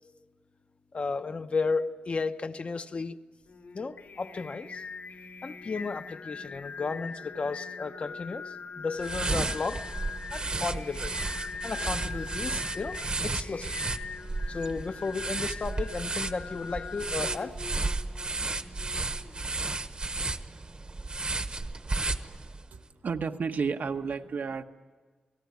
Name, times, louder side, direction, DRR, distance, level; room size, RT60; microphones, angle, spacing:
voice 1, 0.9-3.2 3.7-4.8 5.4-9.9 10.3-11.2 11.6-13.7 14.5-17.6, left 4 dB, 40° left, 0.8 m, -34 dB
Singing, 3.5-19.7, left 5 dB, 85° left, 3.2 m, -42 dB
sound 1, 9.0-22.7, right 3 dB, 35° right, 1.1 m, -33 dB
voice 2, 22.7-24.6, right 5 dB, 75° right, 1.2 m, -32 dB
28.5 x 19.0 x 9.5 m
wide cardioid pair, 175°, 3 cm